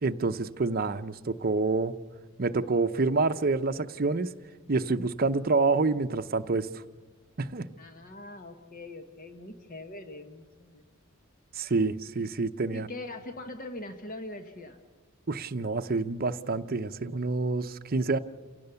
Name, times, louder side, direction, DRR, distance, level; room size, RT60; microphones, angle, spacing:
voice 1, 0.0-2.0 2.4-4.3 4.7-6.7 7.4-7.7 11.5-12.9 15.3-18.2, right 3 dB, 45° right, 9 dB, 0.7 m, -27 dB
voice 2, 7.8-10.8 12.7-14.8, left 2 dB, 40° left, 7 dB, 1.3 m, -42 dB
28.5 x 17.5 x 7.0 m, 1.4 s
head